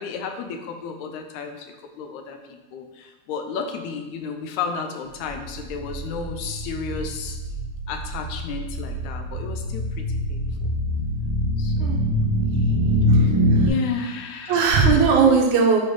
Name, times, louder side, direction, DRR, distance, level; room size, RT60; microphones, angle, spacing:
voice 1, 0.0-7.4 7.9-10.4 11.6-12.1 12.6-12.8 13.2-13.4 13.6-14.7 15.1-15.2, left 5 dB, 75° left, 5 dB, 2.0 m, -33 dB
sound 1, 5.2-13.7, equal, 60° right, 1.0 m, -24 dB
voice 2, 13.1-13.7 14.5-15.8, right 5 dB, 80° right, 0 dB, 2.3 m, -19 dB
8.2 x 4.4 x 3.8 m, 1.1 s
omnidirectional pair, 3.6 m